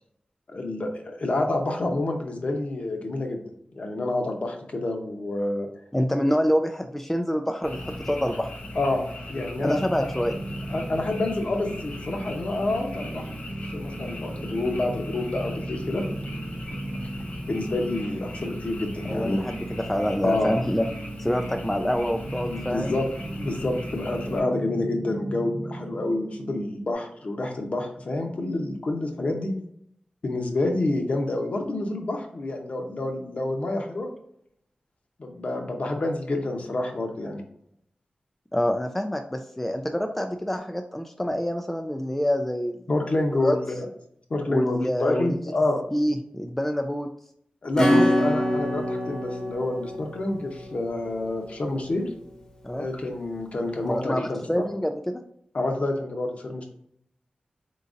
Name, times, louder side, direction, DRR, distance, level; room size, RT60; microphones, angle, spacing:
voice 1, 0.5-3.4 3.7-5.7 8.7-10.1 10.7-13.3 13.7-16.0 17.5-19.4 20.2-20.6 22.4-23.1 23.4-29.5 30.2-34.1 35.2-37.4 42.9-43.9 44.3-45.8 47.6-52.1 52.7-54.6 55.5-56.7, left 2 dB, 50° left, 3 dB, 0.8 m, -28 dB
voice 2, 5.9-8.5 9.6-10.4 19.0-20.9 21.2-23.0 38.5-42.7 43.3-43.6 44.5-45.4 45.9-47.1 52.6-52.9 53.8-55.2, equal, 10° left, 5 dB, 0.3 m, -26 dB
Frog, 7.6-24.4, left 1 dB, 70° left, 1.4 m, -38 dB
sound 1, 9.5-26.9, right 1 dB, 70° right, 0.7 m, -37 dB
Acoustic guitar / Strum, 47.8-52.0, equal, 25° left, 0.9 m, -26 dB
4.0 x 3.9 x 2.5 m, 0.70 s
wide cardioid pair, 100°, 3 cm